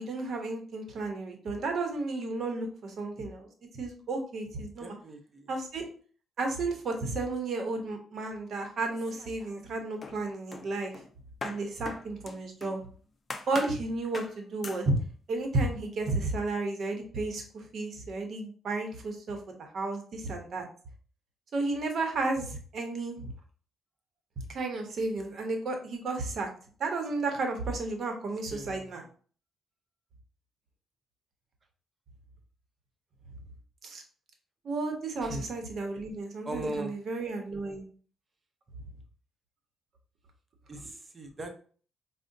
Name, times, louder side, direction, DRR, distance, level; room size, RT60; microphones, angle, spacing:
voice 1, 0.0-3.5 3.8-4.9 5.5-5.8 6.4-10.9 11.4-12.8 13.5-15.0 15.3-20.7 21.5-23.1 24.5-26.5 26.8-29.0 33.8-34.0 34.6-37.9, right 3 dB, 60° right, 4 dB, 0.9 m, -33 dB
voice 2, 4.8-5.5 28.5-29.0 35.2-35.5 36.4-36.9 40.7-41.5, right 1 dB, 30° right, 4 dB, 0.8 m, -39 dB
sound 1, 8.9-9.7 10.0-12.8 13.3-13.8 14.1-14.4 14.6-14.9, left 4 dB, 35° left, 0.4 m, -41 dB
4.8 x 2.1 x 2.6 m, 0.43 s
cardioid pair, 90°, 0 cm